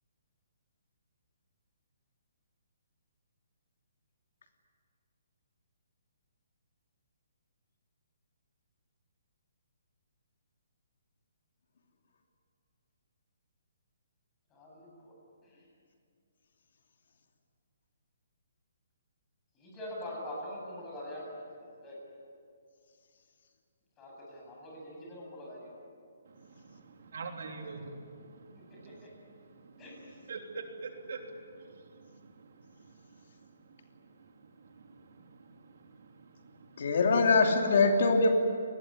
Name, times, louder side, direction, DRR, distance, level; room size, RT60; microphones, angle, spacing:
voice 1, 14.5-15.1 19.6-22.0 24.0-25.6 29.8-29.9, left 1 dB, 15° left, -3 dB, 7.8 m, -43 dB
voice 2, 26.2-37.0, right 4 dB, 60° right, 3 dB, 3.3 m, -47 dB
voice 3, 36.8-38.3, left 3 dB, 55° left, 3 dB, 2.8 m, -23 dB
28.5 x 20.0 x 9.7 m, 2.3 s
hypercardioid pair, 170°, 0 cm